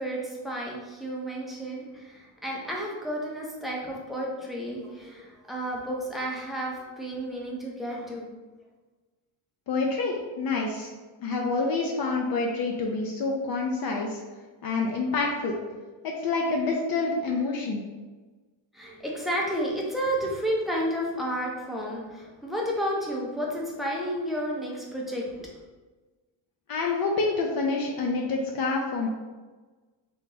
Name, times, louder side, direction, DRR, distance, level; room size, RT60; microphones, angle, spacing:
voice 1, 0.0-8.3 18.7-25.5, equal, ahead, -3 dB, 0.4 m, -31 dB
voice 2, 9.7-10.9 11.2-14.2 14.6-15.6 16.0-17.8 26.7-29.1, left 3 dB, 50° left, 0 dB, 0.5 m, -27 dB
3.8 x 2.7 x 3.8 m, 1.3 s
cardioid pair, 170°, 47 cm